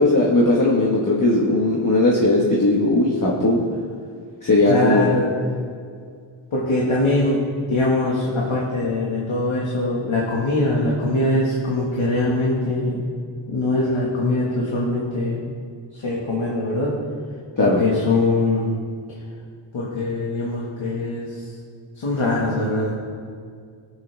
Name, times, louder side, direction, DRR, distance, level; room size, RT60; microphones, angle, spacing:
voice 1, 0.0-3.6 4.4-5.1 17.6-17.8, left 2 dB, 40° left, -3 dB, 1.5 m, -18 dB
voice 2, 4.7-5.3 6.5-7.4 7.7-13.1 13.5-15.4 15.9-16.9 17.6-18.7 19.7-21.4 22.0-23.0, left 2 dB, 80° left, -5 dB, 1.9 m, -22 dB
18.0 x 7.7 x 3.5 m, 2.1 s
wide cardioid pair, 65°, 48 cm